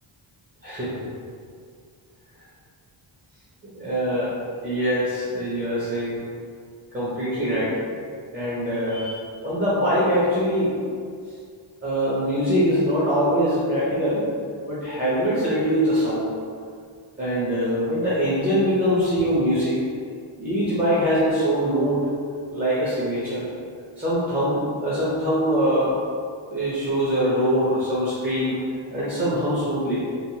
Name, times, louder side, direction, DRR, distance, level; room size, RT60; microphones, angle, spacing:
voice 1, 0.6-1.1 3.6-4.3 4.6-6.2 6.9-7.8 8.3-10.7 11.8-14.3 14.6-16.3 17.2-19.8 20.4-22.1 22.5-23.4 24.0-26.0 26.5-28.6 28.9-30.1, equal, 20° right, -11 dB, 0.8 m, -23 dB
3.1 x 2.0 x 2.8 m, 2.2 s
cardioid pair, 105°, 48 cm